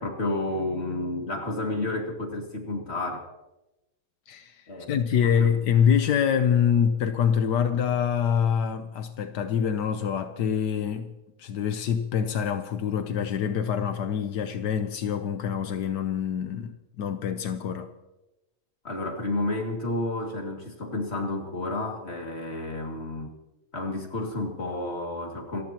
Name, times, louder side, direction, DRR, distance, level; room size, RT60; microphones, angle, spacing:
voice 1, 0.0-3.3 4.7-5.6 18.8-23.4 23.7-25.6, left 2 dB, 40° left, 2.7 m, -31 dB
voice 2, 4.9-11.1 11.4-17.9, left 8 dB, 85° left, 1.5 m, -25 dB
28.0 x 15.0 x 3.0 m
omnidirectional pair, 1.7 m